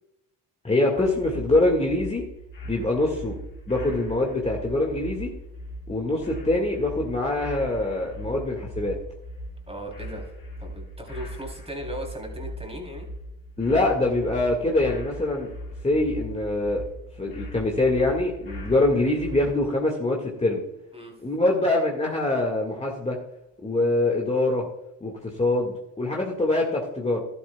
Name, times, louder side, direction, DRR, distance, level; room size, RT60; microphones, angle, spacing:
voice 1, 0.6-2.2 2.7-3.4 3.7-5.3 5.9-9.0 13.6-15.5 15.8-16.8 17.2-20.6 21.2-23.2 23.6-24.6 25.0-27.2, left 2 dB, 15° left, -1 dB, 1.9 m, -24 dB
sound 1, 1.0-19.6, equal, 55° left, 3.6 m, -39 dB
voice 2, 9.7-13.1 20.9-21.1, right 1 dB, 15° right, 2 dB, 3.5 m, -37 dB
12.0 x 11.5 x 2.3 m, 0.85 s
hypercardioid pair, 60°, 42 cm